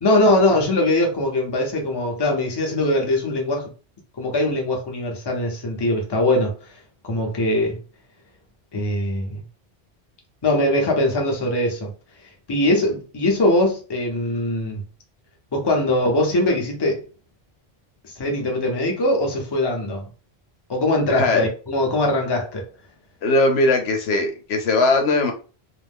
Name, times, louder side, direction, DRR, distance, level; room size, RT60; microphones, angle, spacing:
voice 1, 0.0-3.7 4.2-6.5 7.0-7.8 8.7-9.4 10.4-11.9 12.5-14.8 15.5-17.0 18.1-20.1 20.7-22.6, left 1 dB, 30° left, 0.6 m, -21 dB
voice 2, 23.2-25.3, left 2 dB, 85° left, 0.9 m, -19 dB
2.5 x 2.0 x 3.4 m
omnidirectional pair, 1.0 m